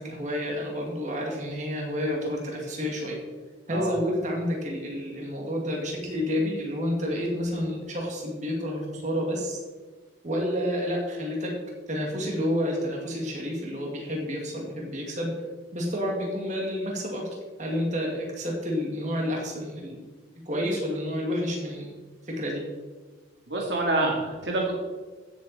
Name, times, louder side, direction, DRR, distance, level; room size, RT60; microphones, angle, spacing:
voice 1, 0.0-3.2 3.7-9.6 10.2-11.5 11.9-15.3 15.7-17.3 17.6-20.0 20.5-22.0 22.3-22.6, equal, 40° right, -1 dB, 2.4 m, -29 dB
voice 2, 23.5-24.7, right 2 dB, 65° right, -1 dB, 2.1 m, -26 dB
15.0 x 7.3 x 4.3 m, 1.4 s
head